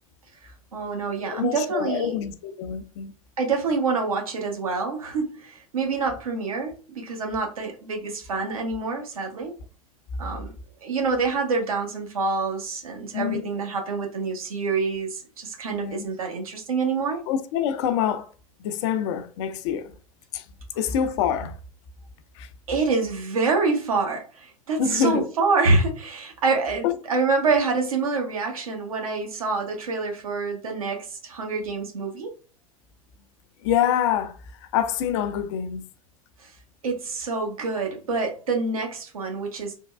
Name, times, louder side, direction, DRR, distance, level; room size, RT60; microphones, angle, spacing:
voice 1, 0.7-2.1 3.4-9.5 10.2-10.5 10.8-17.2 22.7-32.3 36.4-36.5 36.8-39.7, right 4 dB, 75° right, 0.9 m, -26 dB
voice 2, 1.3-3.1 13.1-13.5 15.7-16.1 17.3-18.3 18.6-20.0 20.3-20.4 20.8-21.6 22.4-22.5 24.8-25.3 26.8-27.0 33.6-35.9, left 9 dB, 50° left, 0.4 m, -26 dB
3.4 x 2.2 x 2.2 m
figure-of-eight pair, 85°, 18 cm